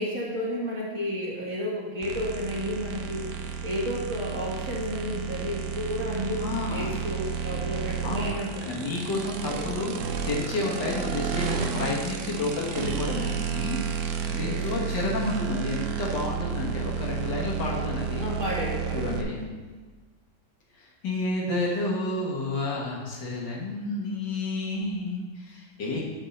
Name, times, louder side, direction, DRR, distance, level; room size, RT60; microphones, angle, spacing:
voice 1, 0.0-8.9 9.6-9.8 14.3-14.9 18.2-19.1, equal, 45° right, -7 dB, 1.9 m, -32 dB
sound 1, 2.0-19.2, right 7 dB, 70° right, 0.7 m, -31 dB
voice 2, 6.4-7.0 7.5-7.6 8.0-18.2 18.9-19.5 20.8-26.0, left 2 dB, 70° left, -3 dB, 2.1 m, -31 dB
8.4 x 3.6 x 6.6 m, 1.3 s
omnidirectional pair, 2.0 m